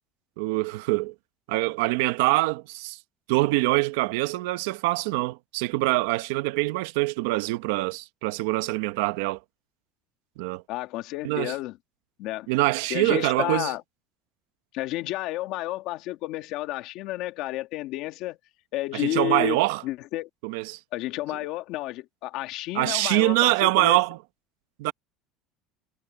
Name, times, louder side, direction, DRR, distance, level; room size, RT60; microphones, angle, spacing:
voice 1, 0.4-1.1 1.5-3.0 3.3-9.4 10.4-10.6 11.2-11.5 12.5-13.7 18.9-19.8 20.4-20.8 22.7-24.2 24.8-24.9, right 20 dB, 80° right, 1.2 m, -24 dB
voice 2, 10.7-11.8 12.2-12.5 12.9-13.8 14.7-18.4 18.7-20.3 20.9-24.0, left 17 dB, 50° left, 1.8 m, -31 dB
cardioid pair, 170°, 0 cm